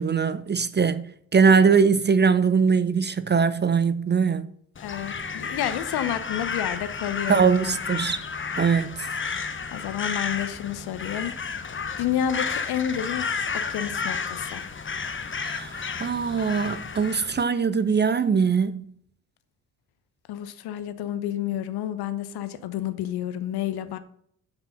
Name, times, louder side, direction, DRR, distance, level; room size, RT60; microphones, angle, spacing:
voice 1, 0.0-4.5 7.3-8.2 8.6-8.9 15.4-18.8, right 6 dB, 25° right, 0.7 m, -21 dB
voice 2, 4.8-7.7 9.7-11.3 12.0-14.7 20.3-24.0, left 10 dB, 60° left, 1.0 m, -30 dB
Crow, 4.8-17.4, left 5 dB, 25° left, 1.1 m, -32 dB
10.0 x 6.0 x 5.5 m
figure-of-eight pair, 40°, 44 cm